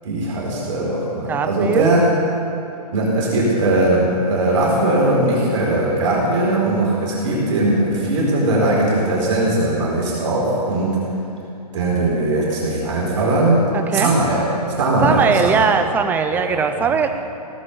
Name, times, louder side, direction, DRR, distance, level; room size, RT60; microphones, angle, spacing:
voice 1, 0.0-2.0 2.9-11.0 11.7-13.6 13.9-14.5 14.8-15.8 16.3-16.6, right 2 dB, 50° right, -4 dB, 4.4 m, -19 dB
voice 2, 1.3-2.0 13.7-14.1 15.0-17.1, right 6 dB, 10° right, 7 dB, 0.6 m, -20 dB
17.5 x 8.5 x 8.5 m, 2.7 s
hypercardioid pair, 145°, 21 cm